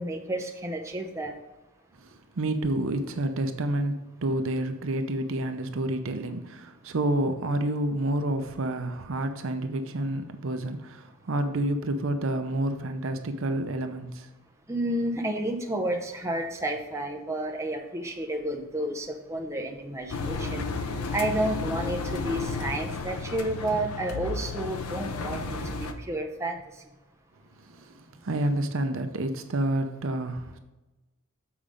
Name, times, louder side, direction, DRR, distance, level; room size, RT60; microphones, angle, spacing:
voice 1, 0.0-1.3 14.7-20.6 21.1-26.6, right 1 dB, 15° right, 2 dB, 0.7 m, -31 dB
voice 2, 2.0-14.3 27.6-30.6, right 1 dB, 60° right, 8 dB, 0.6 m, -29 dB
Engine, 20.1-25.9, left 3 dB, 80° left, 0.7 m, -33 dB
7.2 x 4.9 x 5.1 m, 1.1 s
head